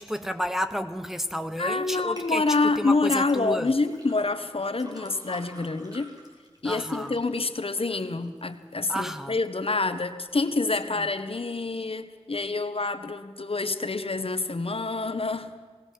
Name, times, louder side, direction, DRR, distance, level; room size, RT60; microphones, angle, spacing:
voice 1, 0.0-2.4 2.8-3.7 6.6-7.1 8.9-9.4, equal, 5° right, 8 dB, 1.0 m, -31 dB
voice 2, 1.6-6.1 6.6-15.6, left 3 dB, 55° left, 10 dB, 1.3 m, -27 dB
sound 1, 2.2-2.3 3.2-9.3 9.8-10.3 10.8-10.9, right 1 dB, 35° right, 4.2 m, -50 dB
20.0 x 17.0 x 7.5 m, 1.5 s
wide cardioid pair, 65°, 11 cm